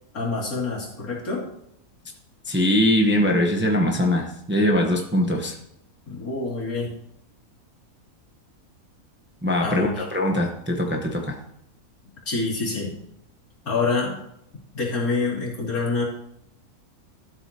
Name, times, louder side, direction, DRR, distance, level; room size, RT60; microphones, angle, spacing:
voice 1, 0.1-1.4 6.1-6.9 9.6-10.1 12.3-12.9 13.6-14.2 14.7-16.0, left 3 dB, 75° left, -4 dB, 3.1 m, -26 dB
voice 2, 2.5-5.6 9.4-11.3, left 1 dB, 10° right, 1 dB, 0.9 m, -22 dB
13.0 x 7.9 x 2.9 m, 0.76 s
omnidirectional pair, 1.6 m